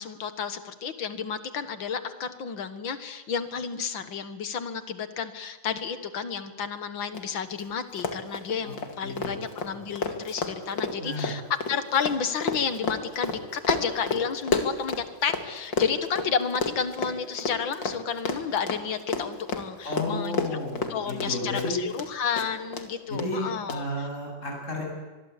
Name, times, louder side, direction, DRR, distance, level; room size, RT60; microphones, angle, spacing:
voice 1, 0.0-11.4 11.7-20.4 20.9-24.1, left 6 dB, 90° left, 10 dB, 2.3 m, -31 dB
Run, 7.1-7.2 7.5-7.6 7.9-15.4 15.7-22.1 22.4-22.9 23.2-23.3 23.7-23.8, left 4 dB, 70° left, 2.9 m, -30 dB
voice 2, 9.0-9.5 11.0-11.3 19.8-21.8 23.1-24.8, left 1 dB, 40° left, 0 dB, 8.3 m, -32 dB
25.0 x 22.5 x 8.4 m, 1.2 s
omnidirectional pair, 2.0 m